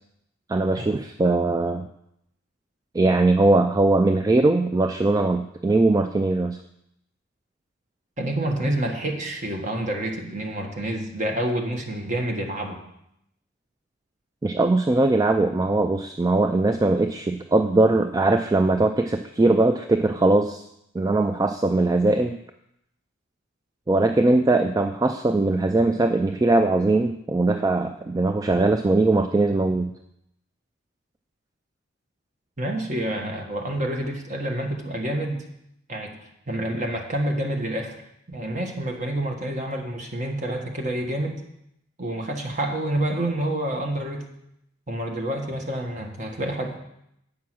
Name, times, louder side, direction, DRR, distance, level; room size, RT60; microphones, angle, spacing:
voice 1, 0.5-1.9 2.9-6.6 14.4-20.6 20.9-22.4 23.9-29.9, right 2 dB, 20° right, 7 dB, 0.3 m, -20 dB
voice 2, 8.2-12.8 32.6-35.4 35.9-36.1 36.5-38.0 38.3-41.4 42.0-44.3 44.9-46.8, right 1 dB, 40° right, 2 dB, 1.4 m, -28 dB
8.5 x 5.9 x 6.1 m, 0.78 s
head